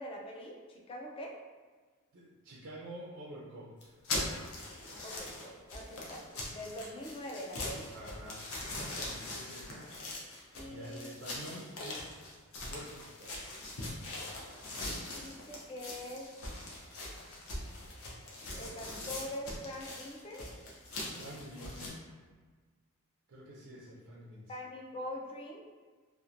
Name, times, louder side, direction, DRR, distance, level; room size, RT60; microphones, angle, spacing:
voice 1, 0.0-1.3 5.0-7.9 10.5-11.1 15.0-16.3 18.5-20.5 24.5-25.6, left 1 dB, 25° left, -1 dB, 0.3 m, -44 dB
voice 2, 2.1-4.0 7.9-9.9 10.2-12.2 12.6-13.4 21.2-22.0 23.3-24.5, equal, 60° right, -6 dB, 0.4 m, -48 dB
sound 1, 3.8-21.9, left 2 dB, 65° left, 0.6 m, -42 dB
2.8 x 2.1 x 2.4 m, 1.4 s
head